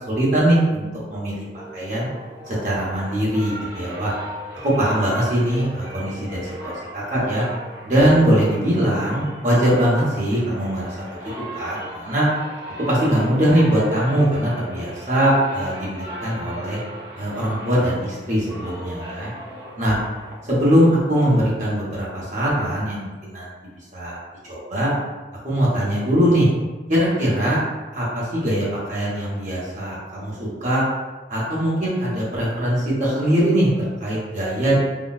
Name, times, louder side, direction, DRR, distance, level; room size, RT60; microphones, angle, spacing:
voice 1, 0.0-1.5 1.7-2.1 2.5-4.1 4.6-7.4 7.8-11.0 11.5-12.3 12.9-16.8 17.2-19.3 19.8-20.0 20.5-23.5 23.9-24.2 24.5-24.9 25.4-26.5 26.9-27.6 27.9-30.8 31.3-34.8, equal, 45° right, -7 dB, 0.9 m, -21 dB
sound 1, 1.5-20.9, equal, 85° right, 0.9 m, -37 dB
3.7 x 2.3 x 2.4 m, 1.2 s
head